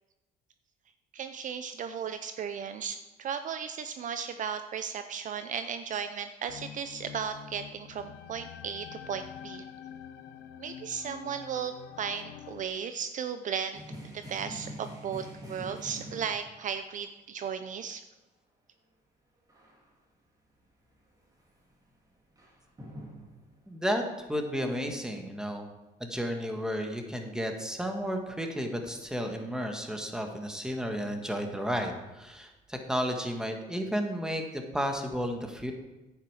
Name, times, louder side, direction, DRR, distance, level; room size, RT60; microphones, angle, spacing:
voice 1, 1.1-9.6 10.6-13.8 14.1-18.0, right 7 dB, 50° right, 9 dB, 0.6 m, -36 dB
sound 1, 6.5-12.7, left 9 dB, 85° left, 0.7 m, -46 dB
sound 2, 13.7-16.8 19.5-20.1 20.4-23.7 30.9-32.2 32.8-32.9, equal, 20° right, 2.5 m, -46 dB
voice 2, 23.7-24.0 24.3-25.7 26.0-35.7, equal, 5° right, 4 dB, 1.5 m, -32 dB
10.0 x 8.5 x 4.9 m, 1.1 s
cardioid pair, 110°, 17 cm